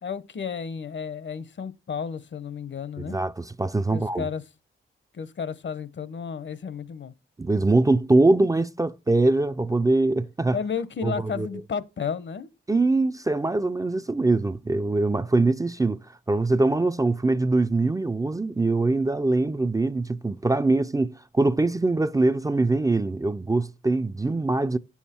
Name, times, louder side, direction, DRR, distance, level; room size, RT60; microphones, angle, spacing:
voice 1, 0.0-3.2 3.9-4.4 5.1-7.1 10.5-12.5, left 6 dB, 60° left, 0.9 m, -32 dB
voice 2, 3.1-4.3 7.4-10.6 11.0-11.5 12.7-16.0 16.3-24.8, right 2 dB, 15° right, 0.4 m, -23 dB
9.2 x 7.2 x 4.3 m
wide cardioid pair, 95°, 21 cm